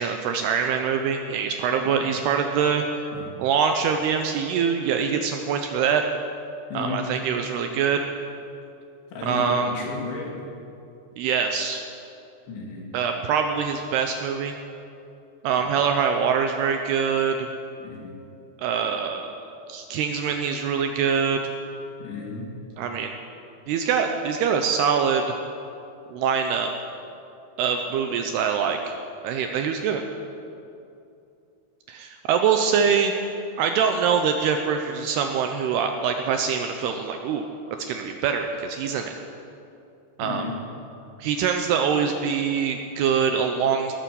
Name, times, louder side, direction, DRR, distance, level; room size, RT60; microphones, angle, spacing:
voice 1, 0.0-3.1 3.4-6.0 6.7-8.0 9.2-9.7 11.2-11.8 12.9-14.6 15.4-17.5 18.6-19.3 19.7-21.5 22.8-23.2 23.7-25.3 26.1-26.7 27.6-28.9 29.2-30.0 31.9-33.1 33.6-37.5 37.8-39.1 40.2-40.5 41.2-43.9, right 6 dB, 80° right, 5 dB, 2.4 m, -24 dB
voice 2, 1.8-2.2 3.1-3.3 6.7-7.1 9.1-10.4 12.5-12.8 15.6-15.7 17.8-18.1 22.0-22.5 40.2-40.6, left 4 dB, 80° left, -2 dB, 5.0 m, -33 dB
20.0 x 9.4 x 7.0 m, 2.6 s
omnidirectional pair, 5.3 m